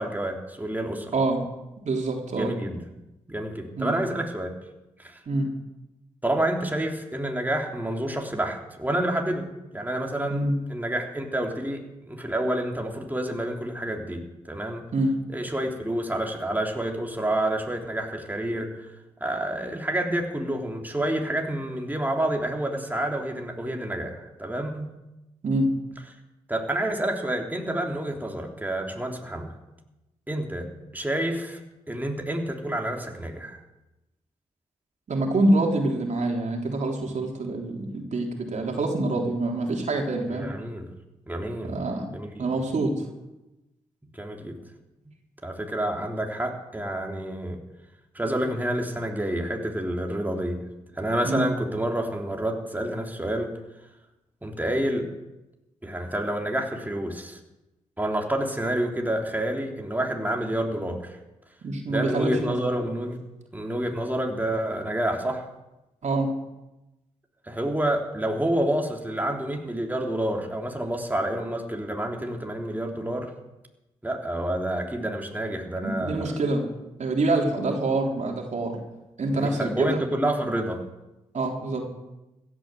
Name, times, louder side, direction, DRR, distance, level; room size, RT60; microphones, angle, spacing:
voice 1, 0.0-1.1 2.4-2.8 3.3-4.5 5.0-5.2 6.2-9.5 9.7-14.8 15.3-18.9 19.2-24.9 26.5-29.5 30.3-30.7 30.9-31.6 31.9-33.6 40.3-40.9 41.3-42.4 44.2-44.6 45.4-47.6 48.2-50.6 50.9-53.5 54.4-55.1 55.8-57.4 58.0-61.2 61.9-63.2 63.5-65.5 67.5-73.3 74.0-76.3 79.3-80.8, right 1 dB, 10° right, 1 dB, 3.5 m, -28 dB
voice 2, 1.1-1.4 1.8-2.5 3.8-3.9 5.3-5.5 10.3-10.6 14.9-15.1 25.4-25.7 35.1-40.5 41.6-42.1 42.4-43.1 51.2-51.5 61.6-62.6 66.0-66.3 75.8-76.7 77.0-78.8 79.2-80.0 81.3-81.8, right 2 dB, 60° right, 1 dB, 3.6 m, -26 dB
16.0 x 11.5 x 7.7 m, 0.97 s
supercardioid pair, 40°, 14 cm